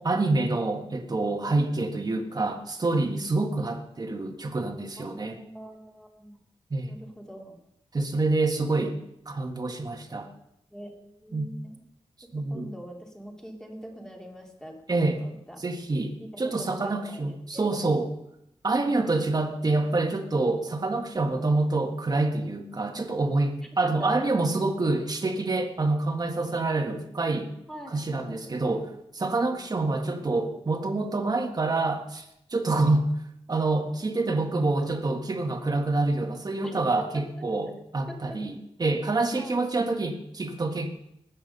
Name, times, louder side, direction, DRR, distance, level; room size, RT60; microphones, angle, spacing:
voice 1, 0.0-5.3 6.7-6.9 7.9-8.9 9.3-10.3 11.3-11.5 12.3-12.7 14.9-15.2 15.6-18.1 18.6-27.5 27.9-33.1 33.5-40.9, right 2 dB, 35° right, 4 dB, 1.8 m, -27 dB
voice 2, 5.0-6.4 6.9-7.5 10.7-11.8 12.5-14.8 15.1-15.6 16.2-17.8 23.8-24.3 27.7-28.4 29.3-29.6 36.6-36.7 37.1-37.2 38.1-38.4 39.4-39.6, equal, 5° left, 0 dB, 2.7 m, -43 dB
20.0 x 8.9 x 5.4 m, 0.78 s
wide cardioid pair, 140°, 11 cm